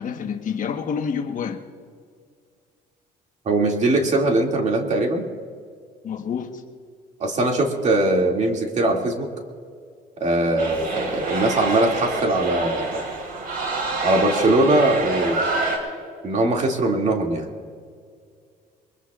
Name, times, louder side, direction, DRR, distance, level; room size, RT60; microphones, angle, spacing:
voice 1, 0.0-1.6 6.0-6.6, left 6 dB, 50° left, 6 dB, 1.2 m, -28 dB
voice 2, 3.5-5.3 7.2-9.3 10.2-13.1 14.0-15.5 16.2-17.5, right 2 dB, 45° right, 2 dB, 2.3 m, -21 dB
sound 1, 10.6-15.8, right 3 dB, 60° right, 3.9 m, -27 dB
23.0 x 21.5 x 2.4 m, 2.1 s
cardioid pair, 110°, 17 cm